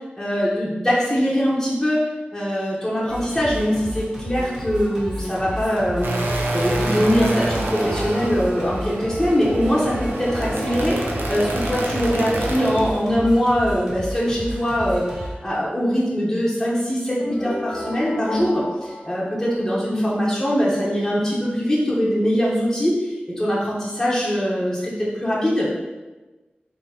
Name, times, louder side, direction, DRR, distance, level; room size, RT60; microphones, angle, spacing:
voice 1, 0.2-2.0 2.3-25.7, equal, 10° left, -7 dB, 0.9 m, -22 dB
Singing, 3.1-15.3, equal, 20° right, 1.5 m, -33 dB
sound 1, 6.0-12.9, right 1 dB, 80° right, 0.6 m, -27 dB
sound 2, 17.2-20.3, left 1 dB, 70° left, 0.7 m, -33 dB
3.7 x 2.9 x 4.3 m, 1.2 s
wide cardioid pair, 90°, 4 cm